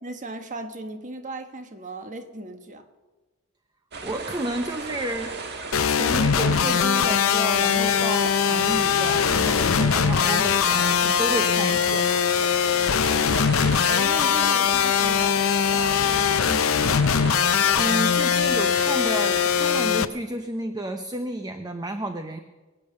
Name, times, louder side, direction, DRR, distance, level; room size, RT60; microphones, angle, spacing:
voice 1, 0.0-2.8 13.9-16.8, right 2 dB, 35° right, 7 dB, 1.3 m, -36 dB
sound 1, 3.9-19.8, right 3 dB, 55° right, 1.6 m, -35 dB
voice 2, 4.0-5.3 5.9-12.0 17.7-22.4, right 1 dB, 20° right, 7 dB, 0.7 m, -31 dB
sound 2, 5.7-20.1, left 7 dB, 75° left, 0.6 m, -21 dB
sound 3, 8.7-9.4 9.7-9.8 10.0-11.4 11.7-12.1 12.4-13.2, right 3 dB, 75° right, 2.5 m, -42 dB
22.5 x 8.8 x 6.5 m, 1.2 s
head